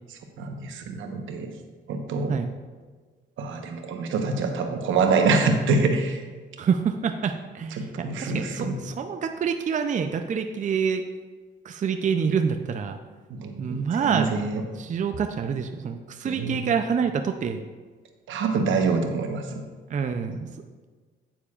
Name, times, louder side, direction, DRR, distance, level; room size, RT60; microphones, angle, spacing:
voice 1, 0.1-1.5 1.9-2.3 3.4-6.2 7.8-8.8 13.3-14.6 16.2-16.7 18.3-19.6, right 4 dB, 80° right, 4 dB, 1.1 m, -26 dB
voice 2, 6.6-11.0 11.6-13.0 13.6-14.4 14.8-17.6 19.9-20.5, right 6 dB, 40° right, 6 dB, 0.5 m, -27 dB
9.4 x 8.9 x 2.4 m, 1.4 s
cardioid pair, 90°, 20 cm